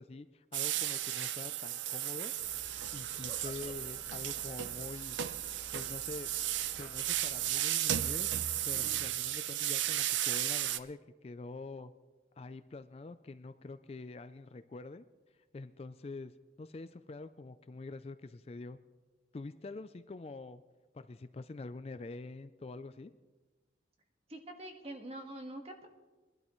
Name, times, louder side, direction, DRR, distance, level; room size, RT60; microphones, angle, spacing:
voice 1, 0.0-2.3 2.9-5.2 5.7-6.3 6.8-8.3 8.6-11.9 12.4-15.0 15.5-16.3 16.6-18.8 19.3-20.6 20.9-23.1, left 3 dB, 35° left, 12 dB, 0.3 m, -45 dB
sound 1, 0.5-10.8, right 12 dB, 90° right, 0.5 m, -35 dB
sound 2, 2.4-7.5, left 2 dB, 55° left, 1.8 m, -55 dB
voice 2, 24.3-25.9, right 1 dB, 35° right, 3 dB, 1.5 m, -45 dB
22.5 x 12.0 x 3.1 m, 1.2 s
head